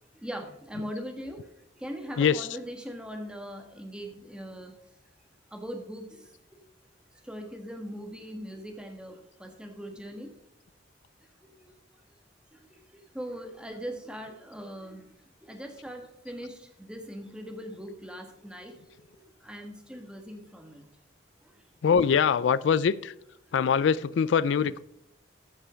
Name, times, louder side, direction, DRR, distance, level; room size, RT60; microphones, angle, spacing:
voice 1, 0.2-1.4 1.8-4.7 5.5-6.3 7.2-10.3 11.4-11.7 12.5-15.1 15.4-19.1 19.4-20.8 21.5-21.6, equal, 5° right, 1.4 m, -40 dB
voice 2, 2.2-2.6 21.8-23.1 23.5-24.8, left 7 dB, 80° left, 0.3 m, -23 dB
14.5 x 5.6 x 5.0 m
head